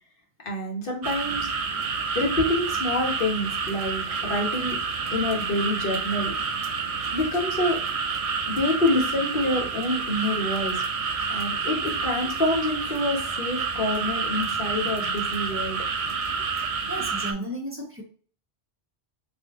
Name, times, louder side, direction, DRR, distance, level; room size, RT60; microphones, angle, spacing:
voice 1, 0.4-1.8 2.1-4.8 5.1-6.3 7.1-7.8 8.5-10.8 11.3-15.9, left 1 dB, 50° left, -1 dB, 1.3 m, -27 dB
sound 1, 1.0-17.3, right 5 dB, 65° right, 0.3 m, -29 dB
voice 2, 16.6-18.0, right 1 dB, 10° right, -2 dB, 0.9 m, -34 dB
3.5 x 2.6 x 3.6 m, 0.43 s
omnidirectional pair, 1.2 m